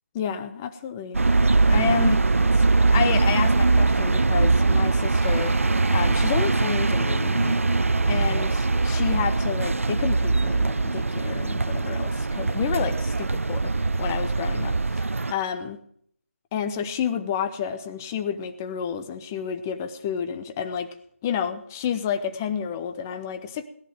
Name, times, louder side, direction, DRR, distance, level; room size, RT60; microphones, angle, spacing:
voice 1, 0.2-1.2 1.7-2.2 2.5-5.6 5.9-7.6 8.1-13.7 14.0-15.8 16.5-20.9 21.2-23.7, left 8 dB, 10° left, 9 dB, 0.5 m, -30 dB
sound 1, 1.1-15.3, right 3 dB, 65° right, 0.4 m, -22 dB
Guitar, 5.2-14.8, equal, 30° right, 4.6 m, -44 dB
17.0 x 11.0 x 4.9 m, 0.64 s
figure-of-eight pair, 155°, 8 cm